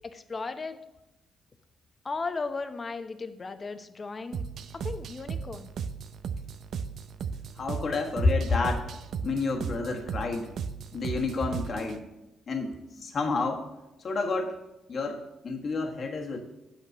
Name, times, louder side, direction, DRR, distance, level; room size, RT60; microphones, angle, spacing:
voice 1, 0.1-0.8 2.0-4.4 4.7-5.7, left 4 dB, 40° left, 9 dB, 0.8 m, -36 dB
sound 1, 4.3-12.0, right 6 dB, 65° right, 0.5 m, -36 dB
voice 2, 7.5-8.9 9.2-10.5 10.9-12.0 12.5-13.6 14.0-14.5 14.9-16.4, left 3 dB, 55° left, 2 dB, 1.4 m, -29 dB
8.3 x 5.9 x 6.1 m, 0.94 s
supercardioid pair, 55°, 0 cm